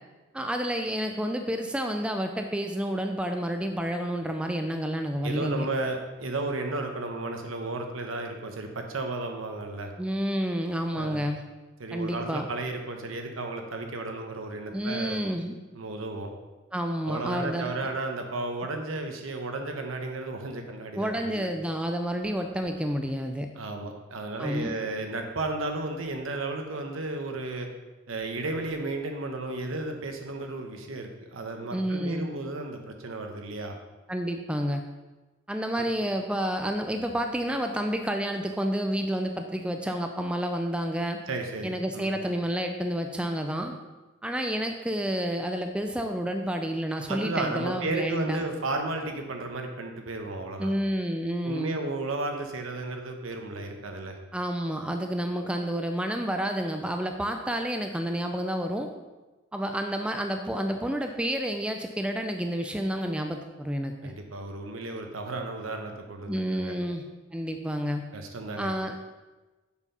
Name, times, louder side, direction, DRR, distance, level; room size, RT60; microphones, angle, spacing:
voice 1, 0.3-5.7 10.0-11.4 11.9-12.5 14.7-15.5 16.7-17.7 21.0-23.5 24.4-24.7 31.7-32.3 34.1-34.8 35.5-41.2 41.6-43.8 44.2-48.5 50.6-51.8 54.3-58.9 59.5-64.1 66.3-67.0 67.3-68.0 68.6-69.2, equal, 5° right, 4 dB, 0.4 m, -30 dB
voice 2, 5.2-9.9 10.9-11.3 11.8-15.2 15.7-16.3 17.0-21.5 23.6-27.7 28.1-33.8 35.8-35.9 41.3-42.1 47.1-50.8 51.4-54.2 64.0-66.8 68.1-68.7, right 2 dB, 85° right, 4 dB, 1.0 m, -33 dB
7.0 x 4.6 x 5.4 m, 1.2 s
head